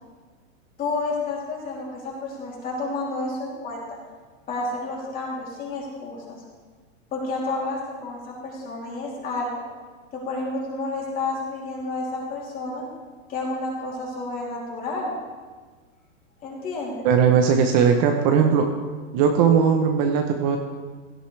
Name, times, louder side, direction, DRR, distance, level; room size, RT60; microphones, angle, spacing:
voice 1, 0.8-3.8 4.5-6.4 7.1-9.6 10.1-12.8 13.3-15.1 16.4-17.1, left 2 dB, 20° left, -3 dB, 3.1 m, -30 dB
voice 2, 17.0-18.7 19.1-20.6, right 7 dB, 35° right, 4 dB, 0.9 m, -18 dB
16.5 x 12.0 x 3.3 m, 1.4 s
hypercardioid pair, 150°, 38 cm